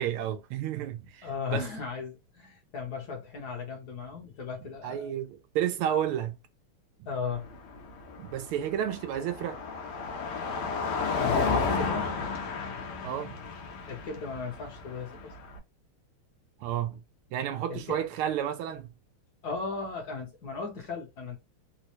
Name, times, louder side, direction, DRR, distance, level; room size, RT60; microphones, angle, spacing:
voice 1, 0.0-1.7 4.8-6.4 8.2-9.6 10.6-10.7 13.0-13.4 16.6-17.0 17.3-18.9, right 10 dB, 90° right, 1.5 m, -31 dB
voice 2, 1.2-5.1 7.1-7.5 11.1-12.1 13.9-15.3 17.7-18.0 19.4-21.4, left 5 dB, 60° left, 1.2 m, -36 dB
Car passing by, 7.3-15.6, left 4 dB, 90° left, 1.7 m, -32 dB
4.2 x 2.1 x 2.8 m
omnidirectional pair, 2.4 m